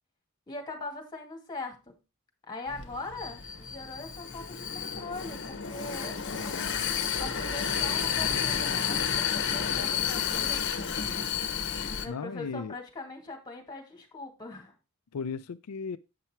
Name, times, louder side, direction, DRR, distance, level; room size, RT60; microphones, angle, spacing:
voice 1, 0.5-1.9 2.5-6.6 7.2-10.6 11.8-14.7, left 2 dB, 20° left, 2.2 m, -41 dB
Vehicle, 2.7-12.1, left 7 dB, 55° left, 1.0 m, -31 dB
voice 2, 6.3-6.9 12.1-12.8 15.1-16.0, left 5 dB, 85° left, 0.4 m, -36 dB
8.3 x 5.8 x 4.4 m
head